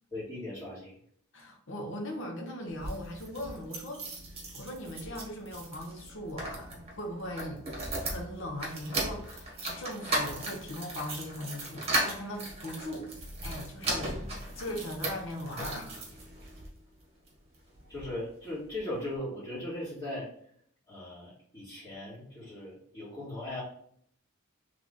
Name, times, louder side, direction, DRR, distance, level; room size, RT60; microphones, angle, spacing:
voice 1, 0.1-1.0 17.9-20.3 20.9-23.6, left 1 dB, 25° left, -12 dB, 1.8 m, -38 dB
voice 2, 1.3-4.1 4.5-7.6 8.0-13.1 13.4-14.2 14.5-16.1, left 1 dB, 65° left, 1 dB, 0.9 m, -39 dB
sound 1, 2.7-16.7 17.3-18.1 18.4-18.5 18.7-18.8, right 1 dB, 30° right, 1.2 m, -37 dB
3.4 x 3.3 x 3.8 m, 0.63 s
head